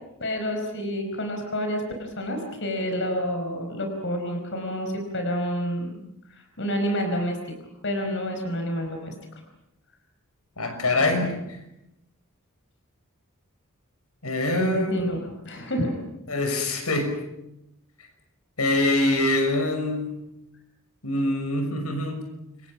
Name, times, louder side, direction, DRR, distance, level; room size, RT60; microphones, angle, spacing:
voice 1, 0.2-6.0 6.6-7.4 7.8-9.1 14.7-16.0 16.5-16.6, equal, 55° left, 4 dB, 4.9 m, -29 dB
voice 2, 10.6-11.4 14.2-15.1 16.3-17.2 18.6-20.2 21.0-22.3, left 2 dB, 85° left, 6 dB, 6.2 m, -24 dB
29.5 x 24.5 x 6.1 m, 0.85 s
head